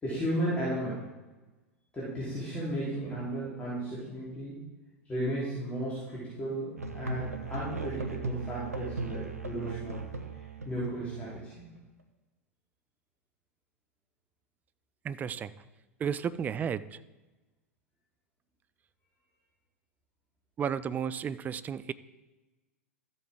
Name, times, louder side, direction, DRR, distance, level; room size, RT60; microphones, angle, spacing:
voice 1, 0.0-1.0 1.9-4.6 5.0-10.0 10.6-11.6, right 1 dB, 15° left, -10 dB, 3.4 m, -34 dB
Musical instrument, 6.8-11.6, right 3 dB, 80° right, 0.9 m, -37 dB
voice 2, 15.0-15.5 16.0-17.0 20.6-21.9, right 7 dB, 20° right, 16 dB, 0.4 m, -33 dB
13.5 x 8.1 x 3.6 m, 1.2 s
figure-of-eight pair, 90°, 8 cm